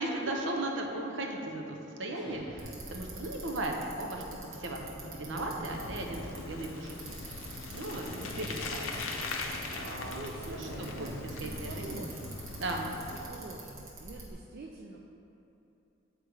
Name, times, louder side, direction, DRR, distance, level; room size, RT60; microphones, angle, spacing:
voice 1, 0.0-7.0 7.7-8.1 8.3-9.1 9.7-11.1 11.4-12.1 12.6-12.9, right 1 dB, 70° right, 1 dB, 0.7 m, -37 dB
sound 1, 2.1-3.4 5.4-6.5 8.0-9.1 10.6-13.3, equal, 20° right, 1.4 m, -47 dB
Bicycle, 2.6-14.3, right 2 dB, 90° right, 1.3 m, -47 dB
Bicycle 2, 5.7-13.3, left 3 dB, 90° left, 0.6 m, -41 dB
voice 2, 9.9-12.4 13.1-15.0, right 3 dB, 50° right, -1 dB, 0.3 m, -46 dB
7.9 x 3.2 x 4.8 m, 2.9 s
head